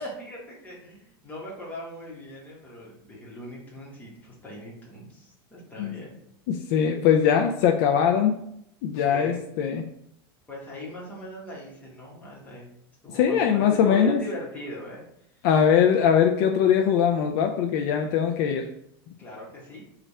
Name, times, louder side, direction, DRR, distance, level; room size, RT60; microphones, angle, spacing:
voice 1, 0.0-6.2 9.0-9.4 10.5-12.7 13.0-15.0 15.3-15.5 19.2-19.8, left 1 dB, 10° left, -5 dB, 1.2 m, -40 dB
voice 2, 6.5-8.4 8.8-9.9 13.1-14.2 15.4-18.7, left 8 dB, 55° left, 3 dB, 0.4 m, -21 dB
3.2 x 2.4 x 4.1 m, 0.74 s
supercardioid pair, 145°, 13 cm